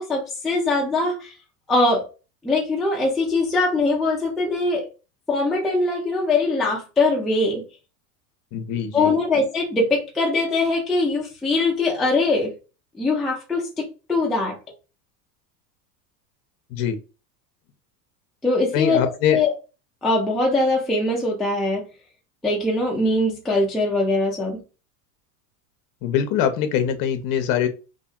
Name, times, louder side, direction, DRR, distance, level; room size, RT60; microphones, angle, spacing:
voice 1, 0.0-1.3 1.7-2.1 2.4-4.9 5.3-7.6 8.9-12.5 13.0-14.6 18.4-19.0 19.3-19.5 20.0-21.8 22.4-24.6, left 2 dB, ahead, 0.3 m, -22 dB
voice 2, 8.5-9.1 16.7-17.0 18.7-19.4 26.0-27.7, left 8 dB, 45° left, 0.6 m, -23 dB
2.6 x 2.5 x 2.3 m
hypercardioid pair, 90°, 50 cm